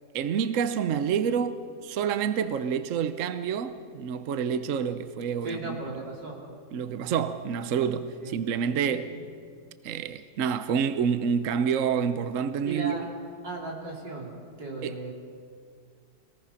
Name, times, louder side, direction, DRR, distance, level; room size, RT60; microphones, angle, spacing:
voice 1, 0.1-5.8 6.7-9.2 9.8-13.0 14.8-15.0, right 7 dB, 55° right, 1.0 m, -28 dB
voice 2, 5.4-6.4 8.2-8.4 8.8-9.0 12.6-13.0 13.4-14.3 14.6-15.1, right 3 dB, 80° right, 4.4 m, -36 dB
25.0 x 19.0 x 5.8 m
omnidirectional pair, 1.9 m